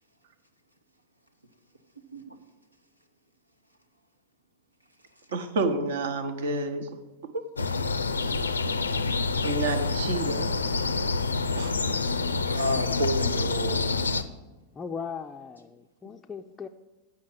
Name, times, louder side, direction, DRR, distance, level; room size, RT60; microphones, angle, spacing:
voice 1, 5.3-6.9 7.3-7.4 8.2-8.3 9.4-10.5 11.6-12.0, right 3 dB, 60° right, 9 dB, 0.9 m, -29 dB
sound 1, 7.6-14.2, left 3 dB, 75° left, 0.4 m, -27 dB
voice 2, 12.5-14.0, equal, 85° right, 6 dB, 0.9 m, -30 dB
voice 3, 14.7-16.7, left 6 dB, 15° left, 3 dB, 0.4 m, -38 dB
8.5 x 5.7 x 7.9 m, 1.1 s
figure-of-eight pair, 90°, 0 cm